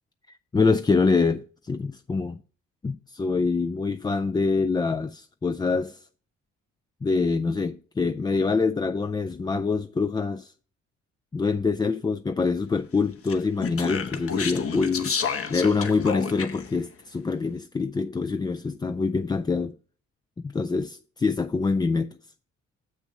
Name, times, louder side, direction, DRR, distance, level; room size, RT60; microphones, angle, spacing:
voice 1, 0.3-2.4 2.8-6.1 7.0-10.5 11.3-15.2 15.5-19.7 20.4-22.2, left 4 dB, 15° left, 0.3 m, -25 dB
Speech, 13.3-16.7, left 6 dB, 50° left, 1.2 m, -30 dB
7.1 x 6.4 x 5.9 m
cardioid pair, 90°, 30 cm